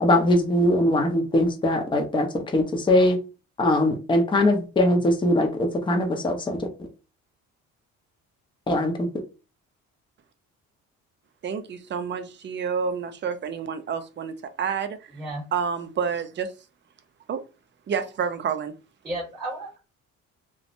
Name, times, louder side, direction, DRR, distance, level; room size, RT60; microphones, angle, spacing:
voice 1, 0.0-3.2 3.6-6.7 8.7-8.9, left 1 dB, 15° left, 0.6 m, -21 dB
voice 2, 11.4-15.1 15.5-16.5 17.3-17.4 17.9-18.7, right 6 dB, 35° right, 0.5 m, -29 dB
voice 3, 19.0-19.8, right 1 dB, 20° right, 1.3 m, -33 dB
3.1 x 2.0 x 2.5 m
cardioid pair, 100°, 30 cm